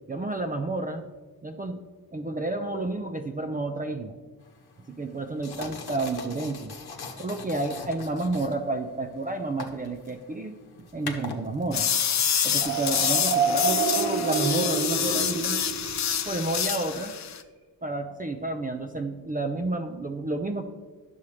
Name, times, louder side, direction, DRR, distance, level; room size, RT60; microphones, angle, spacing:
voice 1, 0.1-1.1 1.4-1.8 2.1-4.1 4.9-6.7 7.2-10.6 10.9-11.9 12.4-15.6 16.2-17.1 17.8-20.6, right 2 dB, 25° right, 6 dB, 0.4 m, -30 dB
sound 1, 4.4-13.7, left 4 dB, 80° left, 0.9 m, -43 dB
sound 2, 11.7-17.4, left 8 dB, 50° left, 0.5 m, -27 dB
sound 3, 12.6-16.3, right 5 dB, 60° right, 1.5 m, -28 dB
10.0 x 7.1 x 3.2 m, 1.4 s
wide cardioid pair, 100°, 37 cm